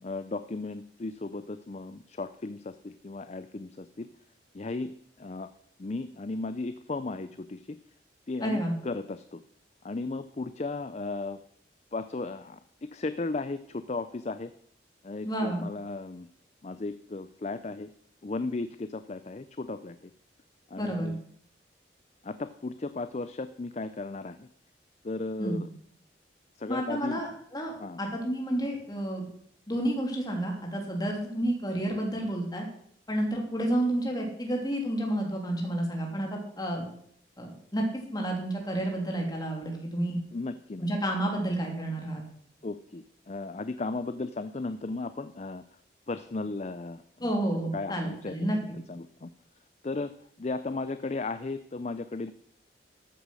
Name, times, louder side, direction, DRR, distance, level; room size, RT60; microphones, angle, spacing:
voice 1, 0.0-4.1 4.5-4.9 5.2-5.5 5.8-7.6 8.3-9.4 9.8-11.4 11.9-14.5 15.0-16.3 16.6-17.9 18.2-20.1 20.7-21.2 22.2-24.5 25.0-25.7 26.6-27.2 27.8-28.0 40.3-40.9 42.6-45.6 46.1-48.5 48.9-49.3 49.8-50.1 50.4-52.3, left 3 dB, 35° left, 12 dB, 0.5 m, -35 dB
voice 2, 8.4-8.7 15.2-15.6 20.8-21.1 25.4-25.6 26.7-29.3 29.7-32.7 33.1-36.9 37.4-37.8 38.1-40.2 40.8-42.2 47.2-48.6, right 1 dB, 20° left, 1 dB, 3.0 m, -30 dB
14.0 x 8.4 x 6.3 m, 0.64 s
head